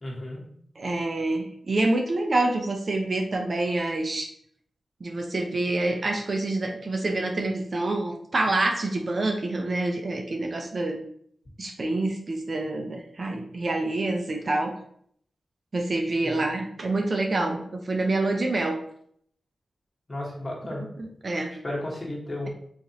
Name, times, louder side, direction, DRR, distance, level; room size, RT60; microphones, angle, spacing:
voice 1, 0.0-0.4 16.2-16.5 20.1-20.8 21.5-22.5, left 1 dB, 35° left, -4 dB, 1.5 m, -33 dB
voice 2, 0.8-4.3 5.0-11.0 11.6-14.7 15.7-18.8 21.0-21.5, right 2 dB, 50° right, 3 dB, 0.6 m, -27 dB
4.0 x 3.0 x 2.8 m, 0.64 s
cardioid pair, 60°, 0 cm